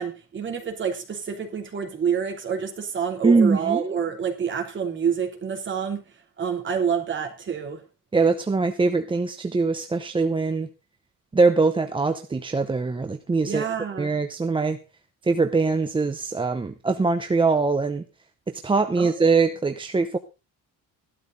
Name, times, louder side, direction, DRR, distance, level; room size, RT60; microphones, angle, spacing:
voice 1, 0.0-6.0 6.4-7.8 13.4-14.1 19.0-19.3, right 7 dB, 35° right, 3.1 m, -27 dB
voice 2, 3.2-3.9 8.1-10.7 11.3-13.7 14.0-14.8 15.2-18.0 18.5-20.2, right 4 dB, 15° right, 0.8 m, -22 dB
14.5 x 12.0 x 3.9 m
cardioid pair, 165°, 33 cm